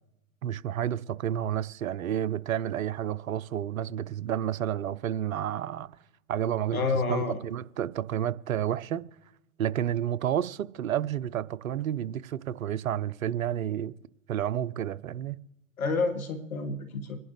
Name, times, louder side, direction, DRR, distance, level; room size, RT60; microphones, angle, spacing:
voice 1, 0.4-5.9 6.3-9.0 9.6-13.9 14.3-15.4, right 10 dB, 75° right, 0.7 m, -30 dB
voice 2, 6.7-7.4 15.8-17.2, left 4 dB, 80° left, 2.0 m, -29 dB
26.5 x 11.0 x 3.3 m
hypercardioid pair, 105°, 42 cm